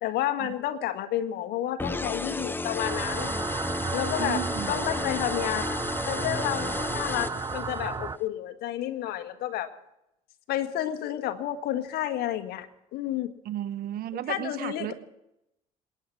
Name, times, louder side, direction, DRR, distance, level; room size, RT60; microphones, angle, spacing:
voice 1, 0.0-3.3 3.9-5.8 6.1-9.7 10.5-12.7 12.9-13.3 14.3-14.9, left 12 dB, 70° left, 9 dB, 1.5 m, -30 dB
sound 1, 1.8-8.0, left 2 dB, 10° left, 0.9 m, -33 dB
sound 2, 2.8-8.2, right 4 dB, 25° right, 0.6 m, -33 dB
voice 2, 4.2-4.7 13.4-14.9, right 12 dB, 60° right, 12 dB, 1.2 m, -33 dB
27.0 x 9.8 x 4.7 m, 0.85 s
hypercardioid pair, 60°, 17 cm